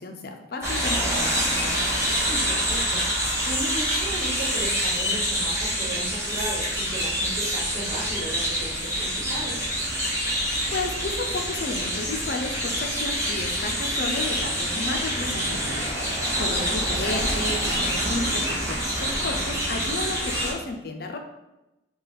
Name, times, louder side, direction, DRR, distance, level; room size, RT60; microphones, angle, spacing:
voice 1, 0.0-1.3 10.7-21.2, left 2 dB, 55° left, 3 dB, 0.5 m, -33 dB
sound 1, 0.6-20.5, equal, 15° right, 0.9 m, -26 dB
voice 2, 2.2-9.6 16.9-17.3, right 1 dB, 50° right, -6 dB, 1.3 m, -36 dB
3.9 x 2.3 x 4.1 m, 0.97 s
head